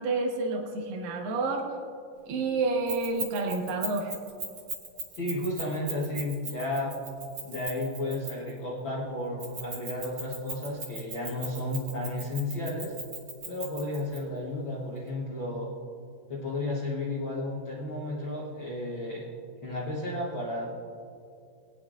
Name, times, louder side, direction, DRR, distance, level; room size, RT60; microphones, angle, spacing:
voice 1, 0.0-1.7 2.3-4.2, right 3 dB, 70° right, 2 dB, 2.9 m, -29 dB
Keys jangling, 2.9-8.6 9.4-14.2, right 3 dB, 40° right, 2.7 m, -38 dB
voice 2, 5.1-6.9 7.4-12.9 13.5-15.7 16.3-19.2 19.6-20.7, left 1 dB, 70° left, -5 dB, 1.1 m, -33 dB
21.0 x 10.5 x 2.5 m, 2.5 s
omnidirectional pair, 4.2 m